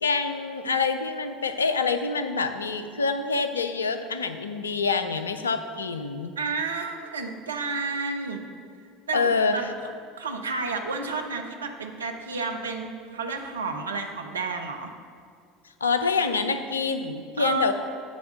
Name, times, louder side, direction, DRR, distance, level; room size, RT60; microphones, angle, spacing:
voice 1, 0.0-6.4 9.1-9.6 15.8-17.7, left 4 dB, 75° left, 9 dB, 0.4 m, -26 dB
voice 2, 6.4-8.4 9.1-9.7 10.2-14.9 17.4-17.7, right 4 dB, 75° right, 5 dB, 0.6 m, -31 dB
8.5 x 3.5 x 6.4 m, 2.2 s
figure-of-eight pair, 65°, 0 cm